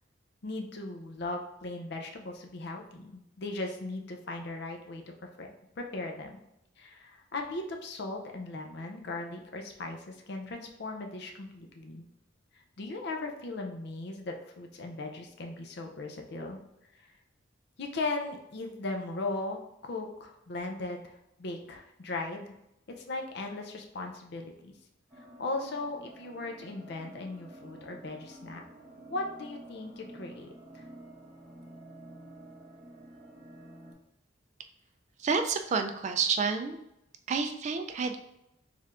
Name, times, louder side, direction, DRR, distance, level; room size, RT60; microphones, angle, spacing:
voice 1, 0.4-5.5 5.8-6.4 6.8-12.1 12.8-16.6 17.8-22.5 23.0-24.7 25.4-28.6 29.1-30.8, left 2 dB, 60° left, 3 dB, 0.5 m, -38 dB
sound 1, 25.1-33.9, right 1 dB, 15° right, 1.1 m, -50 dB
voice 2, 35.2-36.8 37.3-38.2, right 5 dB, 40° right, 6 dB, 0.3 m, -29 dB
4.5 x 3.5 x 2.5 m, 0.84 s
head